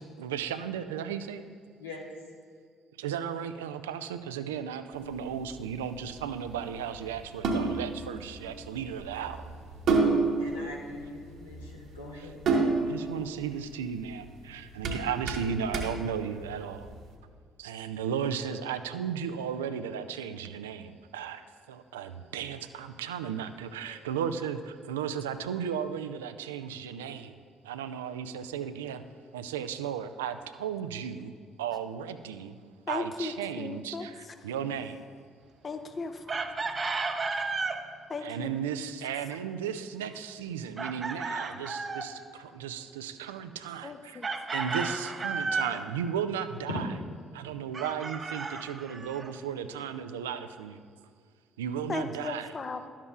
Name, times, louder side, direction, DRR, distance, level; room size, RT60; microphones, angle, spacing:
voice 1, 0.0-1.4 3.0-9.5 12.2-12.3 12.8-16.9 17.6-29.0 29.3-32.6 32.9-35.0 38.2-44.2 44.5-46.9 47.3-50.8 51.6-52.5, right 8 dB, 80° right, 10 dB, 0.3 m, -35 dB
voice 2, 1.8-2.1 10.4-12.3 46.7-46.8, left 2 dB, 85° left, -3 dB, 1.1 m, -41 dB
sound 1, 4.9-17.0, right 3 dB, 55° right, 1.1 m, -31 dB
voice 3, 32.9-34.1 35.6-36.4 36.8-36.9 38.1-38.5 43.8-44.3 51.9-52.9, left 4 dB, 35° left, 9 dB, 0.5 m, -36 dB
Chicken rooster, 36.3-37.8 40.8-42.1 44.2-45.8 47.7-49.3, right 4 dB, 35° right, 0.6 m, -33 dB
12.0 x 7.2 x 2.4 m, 2.1 s
figure-of-eight pair, 50°, 0 cm